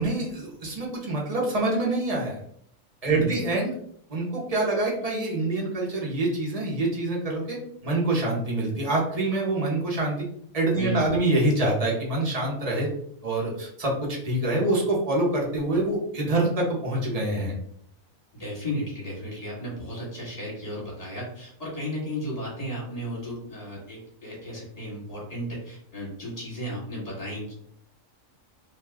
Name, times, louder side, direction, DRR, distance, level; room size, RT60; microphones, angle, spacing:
voice 1, 0.0-2.4 3.0-3.7 4.1-10.2 10.5-12.9 13.2-13.9 14.2-17.6, right 2 dB, 35° right, -3 dB, 0.7 m, -25 dB
voice 2, 3.1-3.4 10.8-11.2 18.3-27.5, equal, 30° left, -5 dB, 1.4 m, -34 dB
2.5 x 2.3 x 3.3 m, 0.66 s
omnidirectional pair, 1.5 m